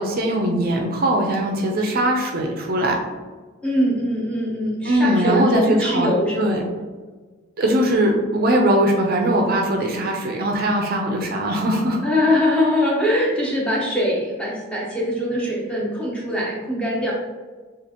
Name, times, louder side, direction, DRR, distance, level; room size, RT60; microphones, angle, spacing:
voice 1, 0.0-3.0 4.8-6.1 6.4-6.6 7.6-12.0, right 1 dB, 45° right, 1 dB, 0.6 m, -20 dB
voice 2, 3.6-6.6 12.0-17.1, left 1 dB, 5° left, -4 dB, 0.9 m, -22 dB
6.9 x 2.5 x 2.8 m, 1.4 s
head